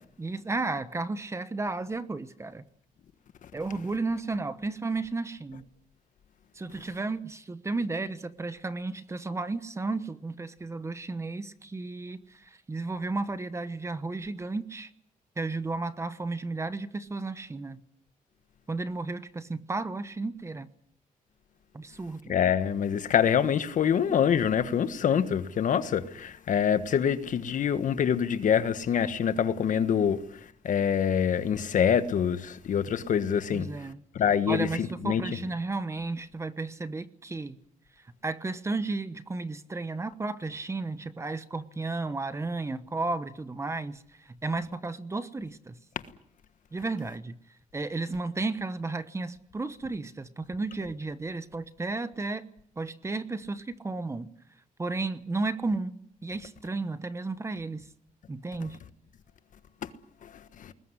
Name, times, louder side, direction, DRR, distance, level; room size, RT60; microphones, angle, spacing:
voice 1, 0.2-2.6 3.5-5.7 6.5-14.9 15.4-17.8 18.7-20.7 21.7-22.4 33.5-34.0 34.5-37.6 38.0-45.8 46.7-47.4 47.7-52.5 52.8-54.3 54.8-57.9 58.3-58.8, right 3 dB, 20° right, 1.1 m, -33 dB
voice 2, 22.3-30.2 30.6-33.7 34.1-35.2, left 8 dB, 60° left, 1.5 m, -25 dB
21.0 x 19.5 x 9.9 m
wide cardioid pair, 145°, 15 cm